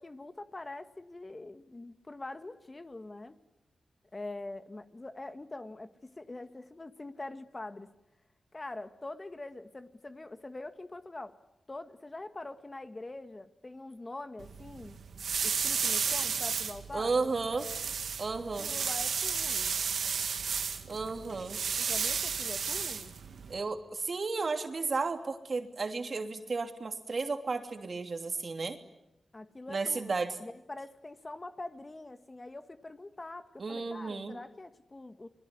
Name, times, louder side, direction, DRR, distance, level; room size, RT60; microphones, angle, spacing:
voice 1, 0.0-3.4 4.1-7.9 8.5-11.3 11.7-15.0 15.4-17.1 18.6-19.8 21.8-23.1 29.3-30.1 30.4-35.3, left 2 dB, 30° left, 9 dB, 2.0 m, -44 dB
sound 1, 14.4-23.6, right 6 dB, 80° right, 2.2 m, -33 dB
voice 2, 16.9-17.7 18.2-18.7 20.9-21.6 23.5-28.8 29.7-30.3 33.6-34.4, right 4 dB, 55° right, 6 dB, 3.1 m, -33 dB
29.0 x 21.0 x 9.8 m, 0.90 s
cardioid pair, 50°, 0 cm